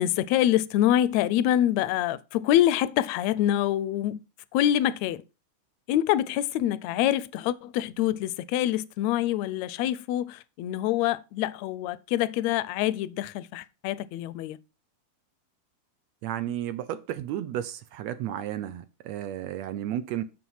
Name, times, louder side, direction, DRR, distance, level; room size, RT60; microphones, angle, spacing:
voice 1, 0.0-4.2 4.5-5.2 5.9-14.6, left 12 dB, 80° left, 1.7 m, -25 dB
voice 2, 16.2-20.2, right 12 dB, 75° right, 1.7 m, -33 dB
7.8 x 6.6 x 5.5 m
omnidirectional pair, 3.4 m